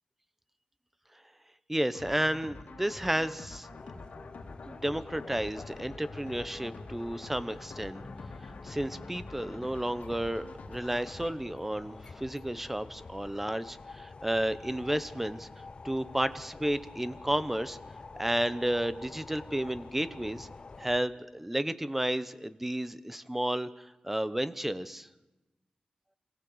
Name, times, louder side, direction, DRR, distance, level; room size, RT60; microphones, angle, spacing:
voice 1, 1.7-3.7 4.7-8.0 8.6-15.5 15.8-17.8 18.2-20.5 20.8-25.1, right 1 dB, 10° right, 13 dB, 0.9 m, -32 dB
sound 1, 1.9-11.3, left 3 dB, 85° left, 3.0 m, -47 dB
sound 2, 3.7-21.0, left 4 dB, 40° left, 0.7 m, -48 dB
26.5 x 16.5 x 8.0 m, 1.1 s
wide cardioid pair, 150°, 3 cm